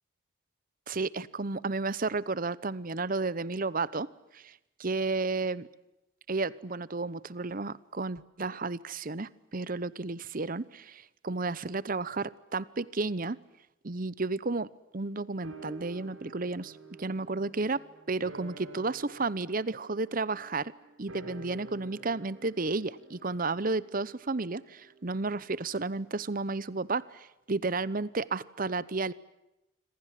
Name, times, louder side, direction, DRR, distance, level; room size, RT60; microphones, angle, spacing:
voice 1, 0.9-4.5 4.8-5.7 6.3-13.4 13.8-14.7 14.9-17.8 18.1-20.7 21.0-29.1, right 3 dB, 45° right, 20 dB, 0.9 m, -32 dB
sound 1, 15.4-26.0 26.3-26.4, right 3 dB, 90° right, 7.2 m, -50 dB
26.5 x 26.5 x 7.5 m, 0.91 s
head